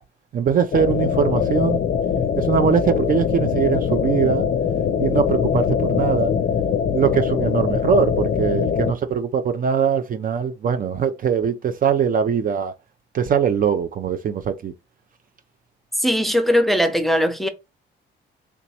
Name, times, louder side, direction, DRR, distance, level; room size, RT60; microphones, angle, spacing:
voice 1, 0.3-1.8 2.4-4.5 5.0-6.3 6.9-12.7 13.1-14.7, right 7 dB, 45° right, 0.4 m, -21 dB
sound 1, 0.7-8.9, left 7 dB, 55° left, 0.5 m, -22 dB
voice 2, 16.0-17.5, equal, ahead, 0.6 m, -19 dB
3.4 x 2.9 x 2.8 m
cardioid pair, 90°, 20 cm